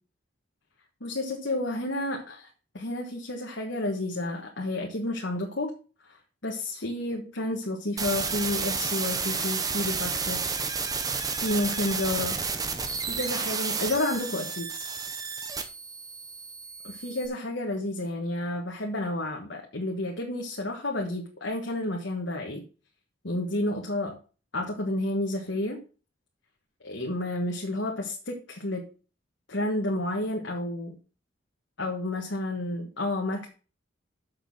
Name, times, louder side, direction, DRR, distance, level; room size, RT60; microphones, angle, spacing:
voice 1, 1.0-2.5 2.7-5.7 6.0-10.4 11.4-12.4 13.1-14.9 16.8-22.6 23.2-24.2 24.5-25.8 26.8-28.8 29.5-31.0 31.8-33.5, left 1 dB, 70° left, 1 dB, 1.5 m, -31 dB
sound 1, 8.0-17.3, right 5 dB, 20° right, 0.8 m, -31 dB
6.9 x 6.5 x 6.1 m, 0.37 s
head